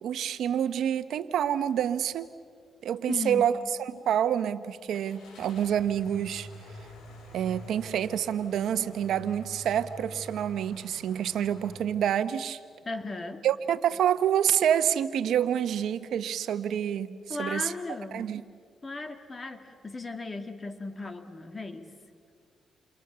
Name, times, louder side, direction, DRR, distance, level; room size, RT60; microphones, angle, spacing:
voice 1, 0.0-2.3 2.8-6.5 7.3-12.6 13.4-17.7 18.1-18.4, right 9 dB, 80° right, 12 dB, 1.1 m, -27 dB
sound 1, 1.8-1.9 2.3-2.4 4.9-11.8, equal, 75° left, 5.5 m, -47 dB
voice 2, 3.1-3.5 12.9-13.5 17.3-18.4 18.8-21.9, left 3 dB, 30° left, 7 dB, 2.2 m, -36 dB
29.5 x 28.5 x 7.0 m, 2.1 s
cardioid pair, 70°, 0 cm